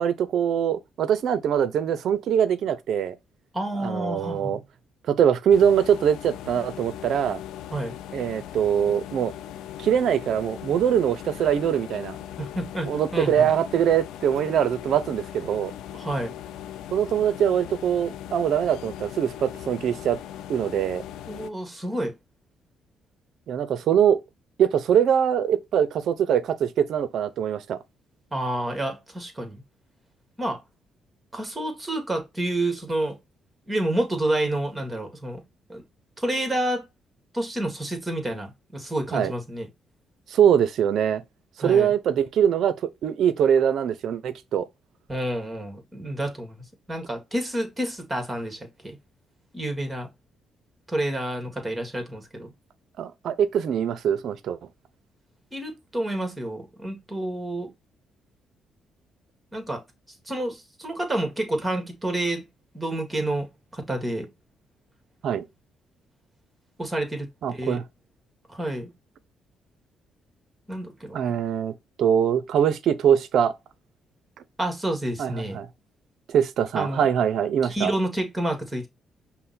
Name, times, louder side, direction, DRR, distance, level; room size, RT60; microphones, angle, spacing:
voice 1, 0.0-3.2 3.7-4.6 5.1-7.4 8.1-9.3 9.8-12.2 12.9-15.7 16.9-20.2 20.5-21.0 23.5-24.2 24.6-27.8 39.1-39.3 40.3-41.2 41.6-44.7 53.0-54.6 65.2-65.4 67.4-67.8 71.1-71.7 72.0-73.5 75.2-75.7 76.3-77.9, right 8 dB, 70° right, 0.5 m, -23 dB
voice 2, 3.5-4.5 7.7-7.9 12.4-13.5 15.9-16.3 21.3-22.2 28.3-29.6 30.4-30.6 31.3-33.2 33.7-35.4 35.7-35.8 36.2-36.9 37.3-39.7 41.6-41.9 45.1-49.0 49.5-50.1 50.9-52.5 55.5-57.7 59.5-59.8 60.2-62.5 62.7-64.3 66.8-67.8 68.5-68.9 70.7-71.2 74.6-75.6 76.7-77.1 77.6-78.9, right 1 dB, 15° right, 1.6 m, -29 dB
sound 1, 5.5-21.5, left 11 dB, 90° left, 0.3 m, -39 dB
5.5 x 2.1 x 4.1 m
cardioid pair, 90°, 0 cm